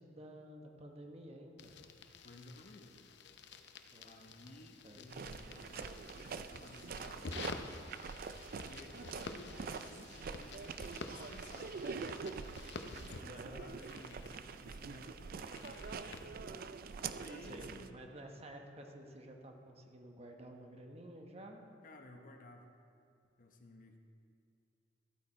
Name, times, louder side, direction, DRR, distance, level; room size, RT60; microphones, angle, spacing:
voice 1, 0.0-1.7 3.9-4.4 4.8-5.0 13.3-13.6 17.4-21.7, right 1 dB, 35° right, 2 dB, 1.1 m, -52 dB
sound 1, 1.6-16.3, left 4 dB, 70° left, 0.7 m, -51 dB
voice 2, 2.2-3.0 4.0-5.8 6.1-7.5 8.6-12.0 13.2-14.3 14.6-16.1 17.1-18.1 21.8-22.7 23.4-24.0, left 2 dB, 50° left, 4 dB, 1.0 m, -56 dB
sound 2, 5.1-17.9, right 5 dB, 55° right, 0.4 m, -45 dB
13.5 x 8.5 x 4.4 m, 2.4 s
head